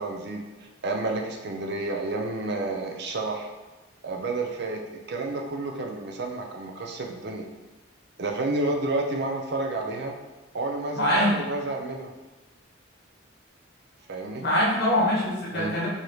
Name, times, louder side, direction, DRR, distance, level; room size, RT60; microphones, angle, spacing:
voice 1, 0.0-3.5 4.0-4.8 5.1-7.5 8.2-10.1 10.5-12.1 14.1-14.4 15.5-15.7, right 2 dB, 55° right, 2 dB, 0.5 m, -30 dB
voice 2, 11.0-11.3 14.4-15.9, equal, 55° left, -4 dB, 1.2 m, -23 dB
4.8 x 2.7 x 3.1 m, 1.2 s
head